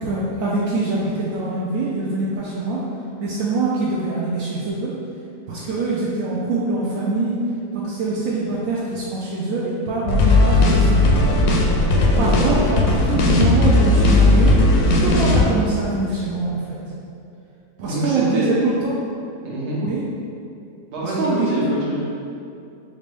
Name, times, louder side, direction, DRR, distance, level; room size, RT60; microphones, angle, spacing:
voice 1, 0.0-2.8 3.2-4.9 5.5-7.3 7.7-11.4 12.2-12.6 12.9-14.5 15.0-16.6 17.8-18.9 19.8-20.0 21.0-21.6, right 3 dB, 75° right, -6 dB, 0.7 m, -24 dB
sound 1, 10.1-15.4, left 2 dB, 70° left, 0.8 m, -16 dB
voice 2, 12.1-12.6 17.8-18.5 19.4-19.8 20.9-22.0, right 1 dB, 50° right, -6 dB, 0.9 m, -26 dB
4.3 x 2.6 x 3.3 m, 2.6 s
omnidirectional pair, 1.9 m